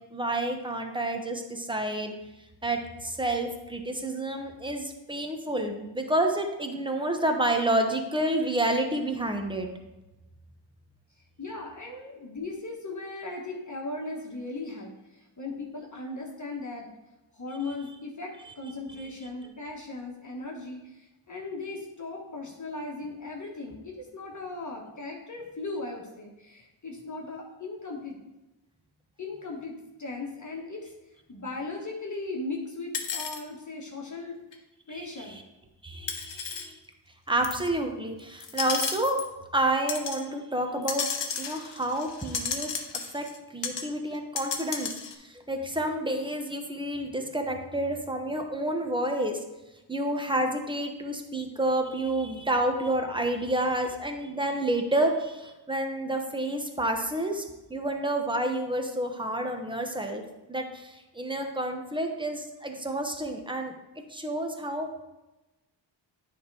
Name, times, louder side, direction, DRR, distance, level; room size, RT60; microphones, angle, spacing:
voice 1, 0.1-2.1 2.6-9.7 34.9-35.0 35.8-36.8 37.3-39.2 39.5-41.1 41.4-42.7 43.1-43.2 43.5-44.9 45.2-49.4 49.9-60.2 60.5-63.7 64.1-64.9, right 1 dB, 10° right, 4 dB, 1.0 m, -29 dB
voice 2, 11.4-16.9 17.3-28.2 29.2-30.9 31.3-35.4, left 3 dB, 40° left, -1 dB, 1.4 m, -38 dB
sound 1, 32.9-33.4 34.5-34.6 36.1-36.7 37.4-37.7 38.4-39.3 39.9-40.2 40.8-43.4 43.6-43.9 44.1-45.1, left 6 dB, 65° left, 1.0 m, -33 dB
9.2 x 3.6 x 4.7 m, 1.0 s
wide cardioid pair, 90°, 46 cm